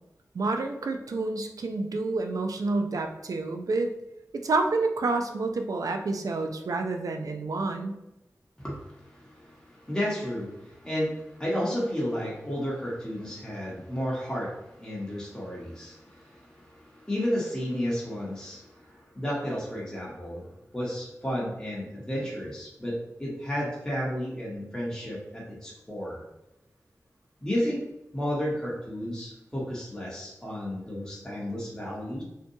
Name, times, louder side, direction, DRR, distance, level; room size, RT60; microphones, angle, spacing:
voice 1, 0.3-3.9 4.3-7.9, right 3 dB, 70° right, 5 dB, 0.3 m, -28 dB
voice 2, 8.6-26.2 27.4-27.8 28.1-32.2, equal, 10° left, -6 dB, 0.9 m, -32 dB
2.6 x 2.2 x 2.7 m, 0.92 s
cardioid pair, 50°, 6 cm